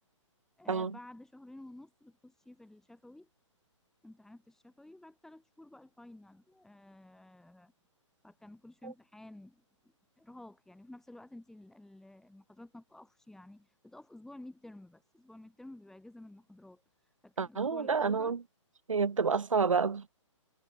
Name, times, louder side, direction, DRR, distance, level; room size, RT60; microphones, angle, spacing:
voice 1, 0.6-3.3 4.0-7.7 8.2-18.4, left 1 dB, 5° left, 5.4 m, -52 dB
voice 2, 17.4-18.4 18.9-20.1, right 5 dB, 85° right, 0.7 m, -29 dB
figure-of-eight pair, 130°, 16 cm